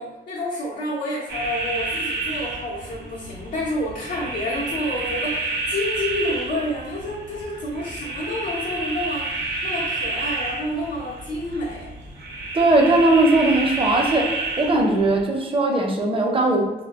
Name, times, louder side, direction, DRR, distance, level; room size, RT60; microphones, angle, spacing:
voice 1, 0.0-11.9, left 1 dB, 90° left, -8 dB, 0.7 m, -29 dB
sound 1, 1.3-15.2, right 2 dB, 85° right, 0.6 m, -30 dB
voice 2, 12.5-14.3 14.6-16.7, right 2 dB, 30° right, 1 dB, 0.6 m, -19 dB
2.2 x 2.1 x 3.4 m, 1.1 s
cardioid pair, 75°, 17 cm